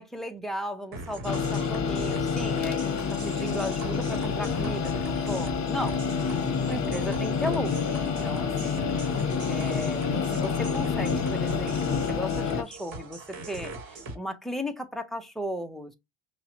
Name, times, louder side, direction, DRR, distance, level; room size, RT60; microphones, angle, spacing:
voice 1, 0.0-6.0 6.7-8.9 9.5-15.9, equal, ahead, 0.5 m, -35 dB
sound 1, 0.9-14.2, right 2 dB, 50° right, 1.1 m, -41 dB
sound 2, 1.2-12.6, left 6 dB, 35° left, 1.0 m, -28 dB
5.4 x 2.2 x 2.6 m
cardioid pair, 115°, 46 cm